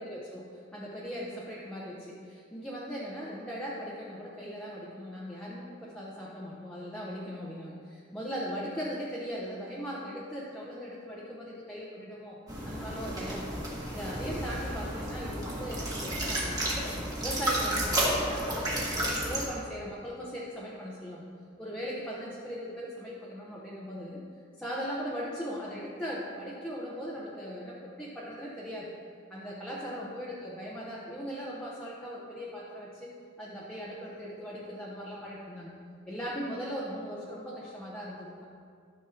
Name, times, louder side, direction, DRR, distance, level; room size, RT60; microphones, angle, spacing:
voice 1, 0.0-12.4 12.7-13.6 13.9-16.8 17.2-21.3 21.6-24.2 24.6-28.9 29.3-33.1 33.4-35.7 36.1-38.5, equal, 5° left, -6 dB, 0.8 m, -39 dB
sound 1, 12.5-19.5, right 1 dB, 20° right, 1.5 m, -32 dB
13.0 x 6.4 x 2.9 m, 2.3 s
head